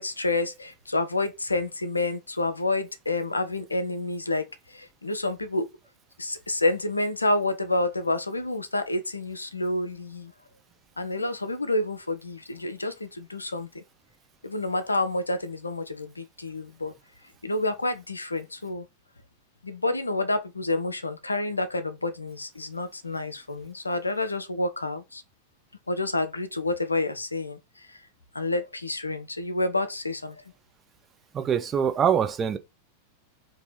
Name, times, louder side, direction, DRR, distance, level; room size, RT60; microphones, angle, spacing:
voice 1, 0.0-5.7 6.2-10.3 11.0-13.8 14.4-16.9 17.4-18.9 19.6-25.2 25.9-28.0 28.3-30.4, left 2 dB, 80° left, 0.4 m, -29 dB
voice 2, 31.3-32.6, right 8 dB, 25° right, 0.5 m, -24 dB
2.7 x 2.6 x 3.8 m
figure-of-eight pair, 90°, 0 cm